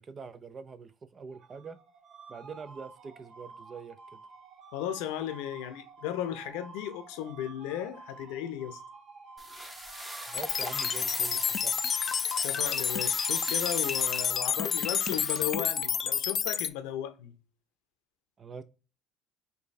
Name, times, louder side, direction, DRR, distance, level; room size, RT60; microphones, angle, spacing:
voice 1, 0.0-1.8 2.3-4.2 10.3-11.8 18.4-18.6, right 5 dB, 35° right, 0.5 m, -44 dB
sound 1, 1.3-16.6, right 4 dB, 50° right, 1.0 m, -50 dB
voice 2, 4.7-8.8 12.4-17.3, left 11 dB, 85° left, 0.6 m, -35 dB
sound 2, 9.4-15.5, equal, 5° right, 0.9 m, -40 dB
sound 3, 10.3-16.7, left 8 dB, 45° left, 0.3 m, -29 dB
4.3 x 2.7 x 3.2 m
supercardioid pair, 90°, 0 cm